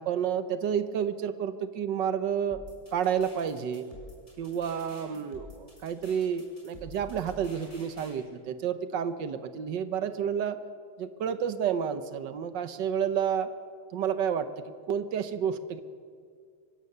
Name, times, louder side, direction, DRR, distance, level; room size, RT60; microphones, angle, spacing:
voice 1, 0.0-2.6 2.9-3.9 4.4-10.6 11.0-13.5 13.9-14.5 14.9-15.8, right 8 dB, 70° right, 11 dB, 1.5 m, -30 dB
sound 1, 2.5-8.1, left 1 dB, 15° left, 5.1 m, -49 dB
24.0 x 16.5 x 6.7 m, 2.1 s
omnidirectional pair, 2.1 m